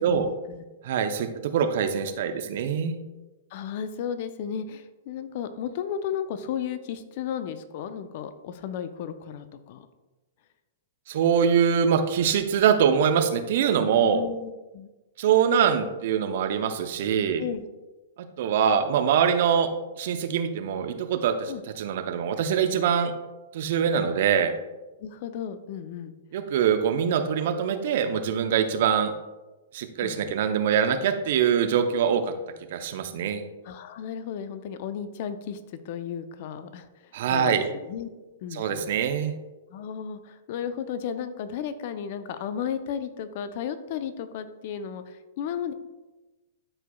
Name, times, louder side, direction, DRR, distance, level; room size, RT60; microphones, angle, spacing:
voice 1, 0.0-0.6 3.5-9.9 13.9-14.9 17.4-17.6 21.5-21.6 23.9-24.0 25.0-26.1 30.0-30.3 33.6-38.1 38.4-38.9 39.7-45.7, left 8 dB, 50° left, 11 dB, 0.6 m, -34 dB
voice 2, 0.8-3.0 11.1-14.2 15.2-17.4 18.4-19.7 20.0-23.1 23.5-24.5 26.3-29.1 29.7-32.3 32.7-33.4 37.1-37.7 38.5-39.3, right 7 dB, 60° right, 8 dB, 0.7 m, -23 dB
12.0 x 4.6 x 2.3 m, 1.1 s
hypercardioid pair, 110°, 0 cm